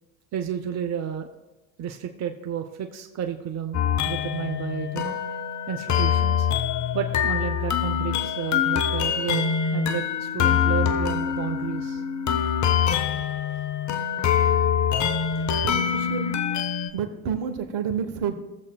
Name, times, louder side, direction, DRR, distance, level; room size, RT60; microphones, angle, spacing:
voice 1, 0.3-1.3 1.8-5.2 5.7-6.5 6.9-12.0, right 9 dB, 35° right, 6 dB, 0.7 m, -31 dB
sound 1, 3.7-16.9, left 8 dB, 35° left, 0.8 m, -24 dB
voice 2, 15.4-16.4 16.9-18.3, right 7 dB, 55° right, 10 dB, 1.2 m, -30 dB
16.0 x 7.3 x 2.3 m, 1.1 s
hypercardioid pair, 65°, 50 cm